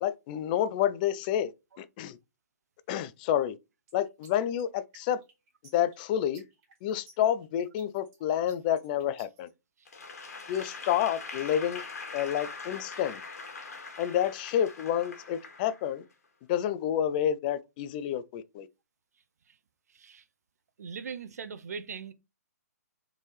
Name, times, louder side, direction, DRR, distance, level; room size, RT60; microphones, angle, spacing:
voice 1, 0.0-1.5 1.8-2.2 2.9-3.6 3.9-5.2 5.7-6.4 6.8-9.5 10.5-11.8 12.1-13.2 14.0-16.0 16.5-18.7, left 10 dB, 30° left, 0.4 m, -29 dB
sound 1, 3.9-9.5, right 3 dB, 30° right, 2.5 m, -57 dB
Applause / Crowd, 9.9-16.1, left 4 dB, 65° left, 1.5 m, -42 dB
voice 2, 19.9-20.2 20.8-22.1, right 6 dB, 70° right, 0.6 m, -40 dB
3.9 x 3.8 x 3.1 m
hypercardioid pair, 135°, 9 cm